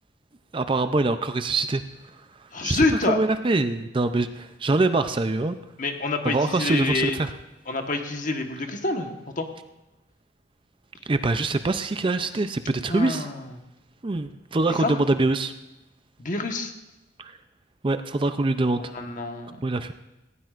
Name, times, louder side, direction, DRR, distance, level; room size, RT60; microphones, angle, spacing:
voice 1, 0.5-1.8 2.6-5.6 6.2-7.3 11.1-13.3 14.0-15.5 17.2-17.3 17.8-18.9 19.6-19.9, right 2 dB, 25° right, 10 dB, 0.5 m, -24 dB
voice 2, 2.5-3.2 5.8-7.2 7.7-9.1 9.4-9.5 12.9-13.4 14.8-15.0 16.2-16.7 18.9-19.6, left 3 dB, 45° left, 4 dB, 1.3 m, -27 dB
18.5 x 16.5 x 2.5 m, 0.99 s
head